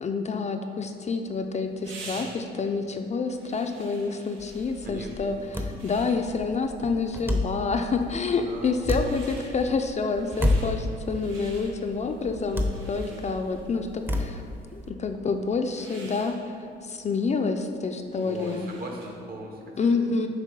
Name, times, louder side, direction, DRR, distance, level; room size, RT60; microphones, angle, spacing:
voice 1, 0.0-14.4 14.7-16.4 16.8-18.7 19.8-20.3, left 4 dB, 35° left, 5 dB, 0.4 m, -28 dB
sound 1, 0.9-19.3, right 2 dB, 85° right, 1.2 m, -50 dB
sound 2, 4.4-14.9, left 1 dB, 10° right, 0.7 m, -31 dB
voice 2, 4.8-5.7 8.4-8.7 13.0-13.2 18.2-19.9, right 1 dB, 50° right, 1 dB, 1.2 m, -40 dB
7.4 x 3.1 x 5.3 m, 2.5 s
cardioid pair, 90°, 20 cm